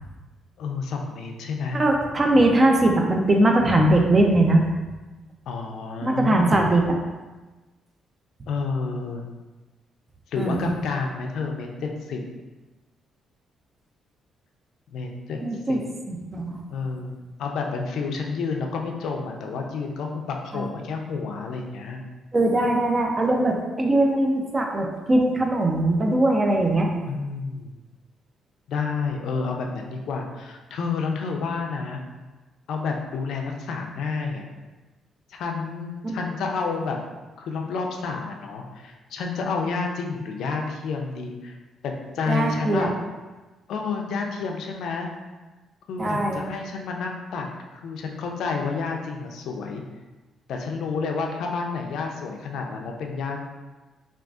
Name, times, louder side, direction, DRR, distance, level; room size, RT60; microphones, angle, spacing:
voice 1, 0.6-1.8 5.5-6.7 8.5-9.2 10.3-12.2 14.9-15.4 15.7-15.9 16.7-17.1 17.4-22.0 27.1-27.8 28.7-32.0 32.7-34.5 35.3-37.0 37.4-41.6 41.8-42.9 43.7-45.1 45.9-47.5 47.7-49.8 50.5-53.5, left 4 dB, 75° left, 2 dB, 0.4 m, -30 dB
voice 2, 1.7-4.7 6.0-6.8 10.4-10.7 15.4-15.8 16.1-16.6 20.5-20.7 22.3-26.9 36.0-36.2 42.3-42.9 46.0-46.4, right 1 dB, 30° right, 2 dB, 0.5 m, -21 dB
3.6 x 2.4 x 2.3 m, 1.2 s
cardioid pair, 90°, 0 cm